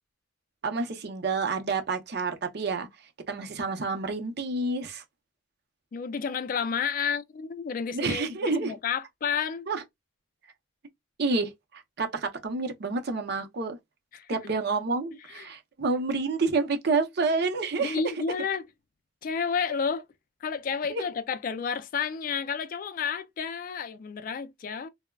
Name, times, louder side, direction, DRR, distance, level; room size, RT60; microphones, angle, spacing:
voice 1, 0.6-2.9 3.3-5.0 7.9-8.8 9.7-9.8 11.2-13.8 14.3-18.0 20.9-21.0, right 3 dB, 55° right, 0.6 m, -29 dB
voice 2, 5.9-9.7 14.1-14.3 15.3-15.5 17.8-18.7 19.2-20.0 20.4-24.9, left 6 dB, 45° left, 0.3 m, -31 dB
3.4 x 2.1 x 2.2 m
head